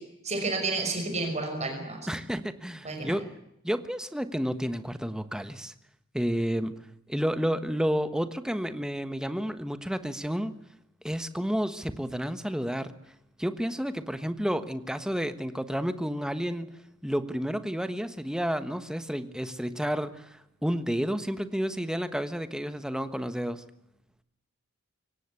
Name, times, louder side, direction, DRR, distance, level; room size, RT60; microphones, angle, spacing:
voice 1, 0.2-2.1 2.8-3.1, right 3 dB, 35° right, 4 dB, 5.7 m, -30 dB
voice 2, 2.1-3.2 3.6-5.7 6.1-6.7 7.1-10.5 11.0-12.9 13.4-16.7 17.0-20.2 20.6-23.6, equal, 5° right, 11 dB, 1.3 m, -30 dB
23.5 x 18.0 x 8.3 m, 0.82 s
head